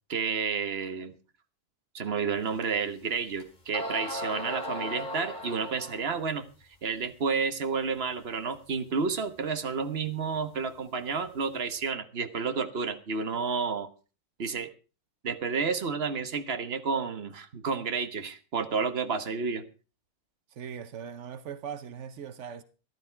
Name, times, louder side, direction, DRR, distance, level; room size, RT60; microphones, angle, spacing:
voice 1, 0.1-1.1 1.9-6.4 6.8-13.9 14.4-14.7 15.2-19.6, right 5 dB, 60° right, 1.5 m, -31 dB
sound 1, 2.6-2.7 3.4-3.5 3.7-6.2, equal, 40° left, 2.4 m, -36 dB
voice 2, 20.5-22.6, right 7 dB, 85° right, 1.2 m, -40 dB
14.0 x 12.0 x 4.5 m
omnidirectional pair, 1.2 m